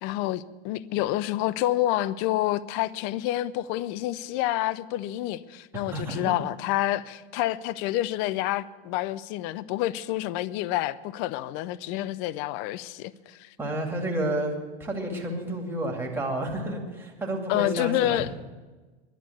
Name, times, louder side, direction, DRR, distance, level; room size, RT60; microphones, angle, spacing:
voice 1, 0.0-13.5 17.5-18.3, left 15 dB, 35° left, 0.4 m, -28 dB
voice 2, 5.7-6.4 13.6-18.2, right 1 dB, 5° right, 2.3 m, -30 dB
11.5 x 10.5 x 8.3 m
hypercardioid pair, 125°, 33 cm